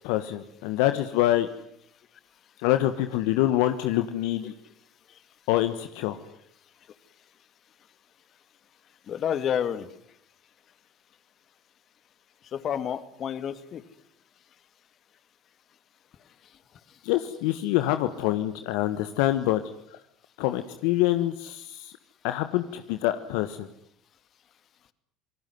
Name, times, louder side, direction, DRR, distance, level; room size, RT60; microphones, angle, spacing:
voice 1, 0.0-1.5 2.6-4.5 5.5-6.2 17.0-19.6 20.4-21.9 22.2-23.7, left 14 dB, 70° left, 9 dB, 1.4 m, -25 dB
voice 2, 9.1-9.9 12.5-13.8, left 9 dB, 45° left, 13 dB, 2.3 m, -29 dB
27.5 x 19.5 x 9.5 m, 0.71 s
hypercardioid pair, 75°, 0 cm